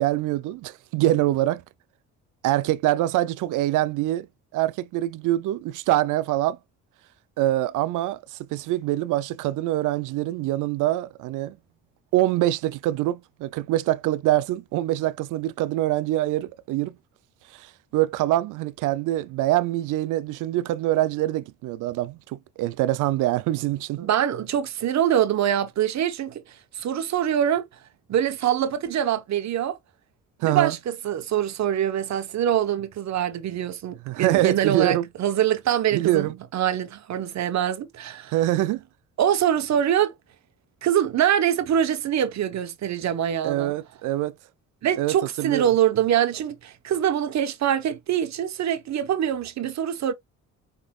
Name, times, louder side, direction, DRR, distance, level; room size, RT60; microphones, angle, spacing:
voice 1, 0.0-1.6 2.4-4.3 4.5-6.6 7.4-11.6 12.1-16.9 17.5-24.1 30.4-30.7 34.1-35.1 35.9-36.4 38.3-38.8 43.4-44.3 45.0-45.7, right 15 dB, 85° right, 0.5 m, -24 dB
voice 2, 24.0-27.7 28.1-29.8 30.4-38.3 39.2-40.1 40.8-43.7 44.8-50.1, right 10 dB, 65° right, 1.1 m, -24 dB
5.1 x 4.0 x 2.3 m
cardioid pair, 90°, 30 cm